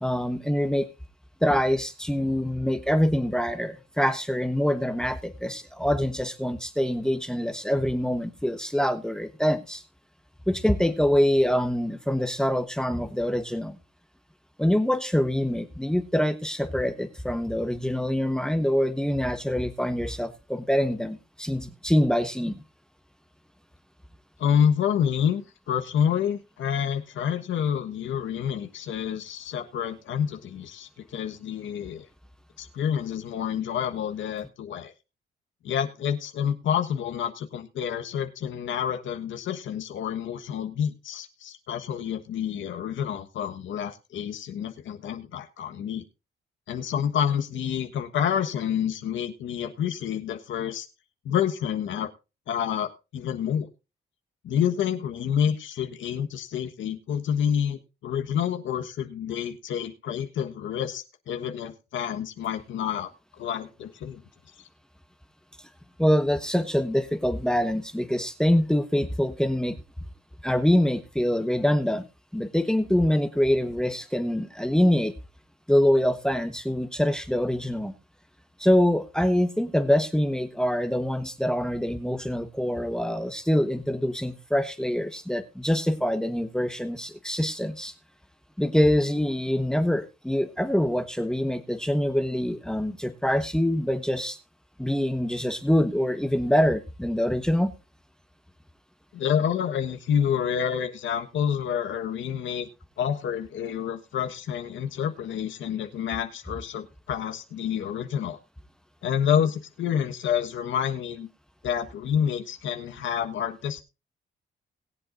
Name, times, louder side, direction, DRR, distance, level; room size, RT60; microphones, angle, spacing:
voice 1, 0.0-0.9 1.4-9.8 10.5-13.8 14.6-22.5 66.0-69.7 70.4-72.0 72.3-75.1 75.7-77.9 78.6-87.9 88.6-94.4 94.8-97.7, equal, 5° left, 10 dB, 1.3 m, -25 dB
voice 2, 24.4-32.1 32.6-34.9 35.6-46.0 46.7-50.9 51.2-52.1 52.5-53.7 54.4-63.1 63.4-64.2 99.1-102.7 103.0-108.4 109.0-111.3 111.6-113.8, left 8 dB, 80° left, 6 dB, 1.4 m, -28 dB
21.5 x 7.8 x 2.6 m, 0.29 s
cardioid pair, 80°, 20 cm